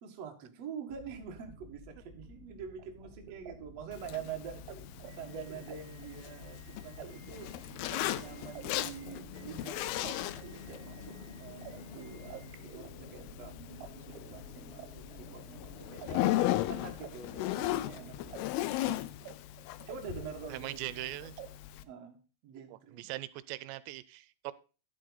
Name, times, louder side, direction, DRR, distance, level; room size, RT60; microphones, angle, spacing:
voice 1, 0.0-4.6 5.2-7.5 7.9-16.2 16.7-18.9 19.9-21.5 21.8-23.1, right 7 dB, 50° right, 3 dB, 2.2 m, -46 dB
sound 1, 0.9-18.4, left 2 dB, 35° left, 1.0 m, -52 dB
sound 2, 2.7-13.9 14.1-15.7 16.0-16.1 16.3-18.4 18.6-19.3 19.6-21.0 21.4-21.5, right 9 dB, 70° right, 3.0 m, -51 dB
Zipper (clothing), 3.9-21.8, left 15 dB, 80° left, 2.3 m, -37 dB
voice 2, 20.5-21.3 22.9-24.5, right 17 dB, 85° right, 16 dB, 2.8 m, -40 dB
12.0 x 7.7 x 4.0 m, 0.35 s
omnidirectional pair, 5.0 m